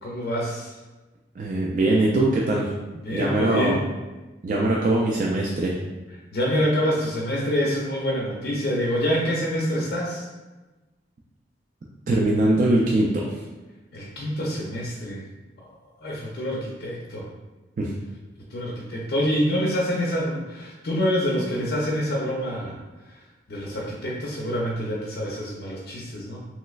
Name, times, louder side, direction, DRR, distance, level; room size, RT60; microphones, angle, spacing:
voice 1, 0.0-0.7 3.0-3.8 6.3-10.2 13.9-15.2 16.0-17.3 18.5-22.8 23.1-23.2 23.5-26.5, equal, 55° left, -4 dB, 0.5 m, -26 dB
voice 2, 1.4-2.7 3.1-3.8 4.4-5.7 12.1-13.4 17.8-17.9, right 2 dB, 45° right, -3 dB, 0.3 m, -22 dB
3.1 x 3.0 x 2.3 m, 1.1 s
head